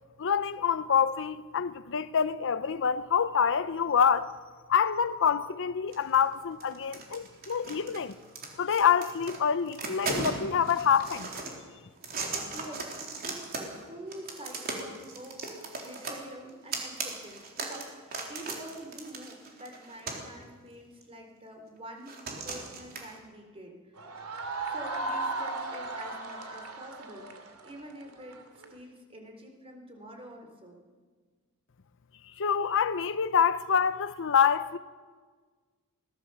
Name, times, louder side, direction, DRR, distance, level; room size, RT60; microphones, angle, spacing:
voice 1, 0.2-4.3 4.7-8.1 8.6-11.3 32.4-34.8, left 7 dB, 60° left, 0.7 m, -26 dB
sound 1, 5.9-6.3 6.6-9.4 9.6-11.5 12.0-13.8 14.1-20.3 21.0-21.1 22.1-23.1, right 3 dB, 45° right, 3.9 m, -37 dB
voice 2, 12.5-12.9 13.2-15.4 15.8-22.1 22.4-24.1 24.6-28.4 28.7-30.7, right 1 dB, 25° right, 3.9 m, -46 dB
sound 2, 24.0-28.7, right 2 dB, 75° right, 2.7 m, -36 dB
24.0 x 17.5 x 7.1 m
head